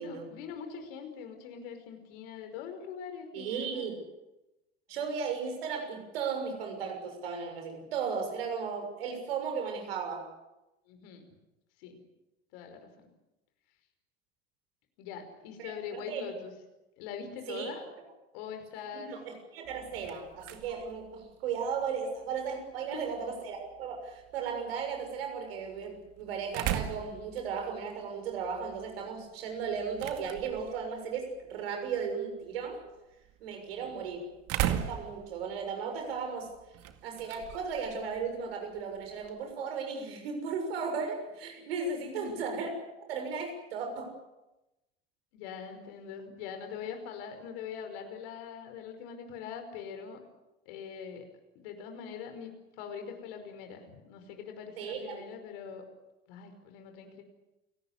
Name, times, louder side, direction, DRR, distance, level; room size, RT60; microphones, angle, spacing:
voice 1, 0.0-3.9 10.9-11.3 11.8-12.0 12.5-13.1 15.0-16.5 17.0-17.8 18.3-19.1 22.9-23.3 33.5-34.0 42.0-42.4 45.3-50.2 50.7-51.3 51.6-52.5 52.8-55.9 56.3-57.2, left 7 dB, 65° left, 6 dB, 5.3 m, -43 dB
voice 2, 3.3-4.0 4.9-10.3 15.6-16.2 17.5-17.7 18.9-32.8 33.4-34.3 34.6-36.5 37.0-42.7 43.0-44.1 54.8-55.2, right 5 dB, 75° right, 4 dB, 6.6 m, -36 dB
sound 1, 19.6-39.5, right 11 dB, 55° right, 2.2 m, -41 dB
29.0 x 18.5 x 8.1 m, 0.97 s
hypercardioid pair, 70°, 30 cm